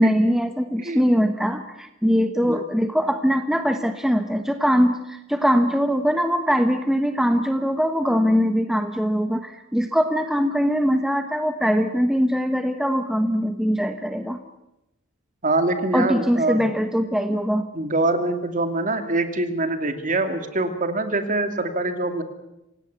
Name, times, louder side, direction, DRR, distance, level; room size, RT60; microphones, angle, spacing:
voice 1, 0.0-14.4 15.9-17.7, equal, ahead, 7 dB, 1.2 m, -22 dB
voice 2, 0.8-1.1 2.4-2.6 15.4-16.6 17.3-17.4 17.7-22.2, right 2 dB, 40° right, 7 dB, 2.7 m, -24 dB
27.5 x 17.5 x 8.5 m, 0.89 s
head